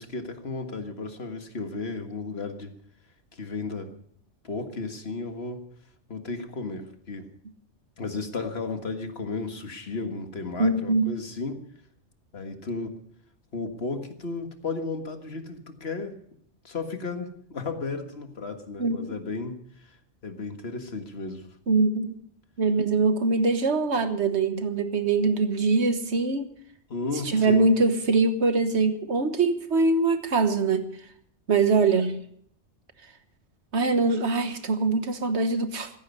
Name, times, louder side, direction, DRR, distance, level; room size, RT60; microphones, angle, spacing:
voice 1, 0.0-2.7 3.3-3.9 4.4-5.6 6.1-7.3 8.0-11.6 12.3-13.0 13.5-16.2 16.6-19.6 20.2-21.5 26.9-27.7, left 3 dB, 60° left, 6 dB, 1.9 m, -34 dB
voice 2, 10.6-11.1 18.8-19.2 21.7-22.2 22.6-26.5 27.2-30.8 31.5-32.2 33.7-35.9, right 3 dB, 70° right, 9 dB, 1.6 m, -23 dB
15.5 x 15.0 x 5.4 m, 0.65 s
omnidirectional pair, 1.2 m